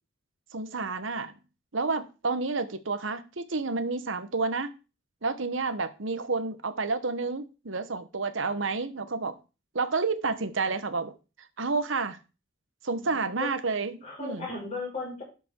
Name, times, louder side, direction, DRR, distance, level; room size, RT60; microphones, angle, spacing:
voice 1, 0.5-1.3 1.7-4.7 5.2-9.3 9.7-11.1 11.6-12.2 12.8-14.5, right 4 dB, 65° right, 11 dB, 1.1 m, -30 dB
voice 2, 12.9-13.5 14.0-15.2, left 3 dB, 35° left, -2 dB, 5.6 m, -36 dB
12.0 x 5.3 x 4.6 m, 0.32 s
head